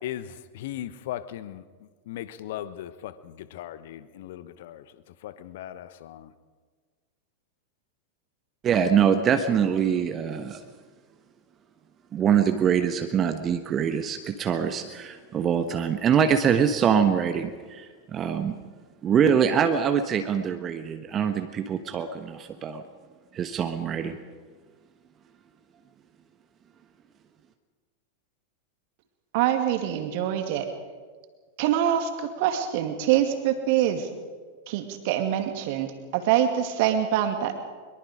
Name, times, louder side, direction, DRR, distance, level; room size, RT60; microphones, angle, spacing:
voice 1, 0.0-1.6 2.1-4.8 5.2-6.3, left 12 dB, 55° left, 14 dB, 1.1 m, -38 dB
voice 2, 8.6-10.6 12.1-18.6 19.0-22.8 23.3-24.2, right 7 dB, 25° right, 7 dB, 1.3 m, -24 dB
voice 3, 29.3-30.7 31.6-34.1 34.7-37.5, right 10 dB, 50° right, 6 dB, 2.4 m, -25 dB
23.0 x 22.5 x 5.1 m, 1.5 s
figure-of-eight pair, 90°, 0 cm